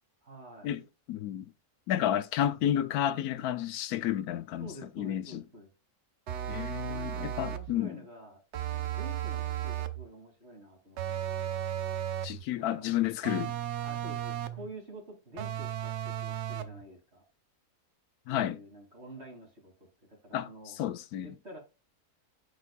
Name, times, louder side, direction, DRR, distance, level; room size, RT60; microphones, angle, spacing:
voice 1, 0.2-0.8 4.6-5.7 6.9-8.4 8.7-11.7 12.6-12.9 13.8-17.2 18.3-20.8 21.2-21.6, right 1 dB, 45° right, 2.9 m, -49 dB
voice 2, 1.1-1.5 1.9-5.4 6.5-8.0 12.2-13.5 18.3-18.6 20.3-20.5 20.8-21.3, left 11 dB, 80° left, 1.1 m, -31 dB
sound 1, 6.3-7.7 8.5-10.0 11.0-12.4 13.2-14.7 15.4-16.8, right 11 dB, 60° right, 0.8 m, -35 dB
10.0 x 4.3 x 2.3 m
omnidirectional pair, 1.6 m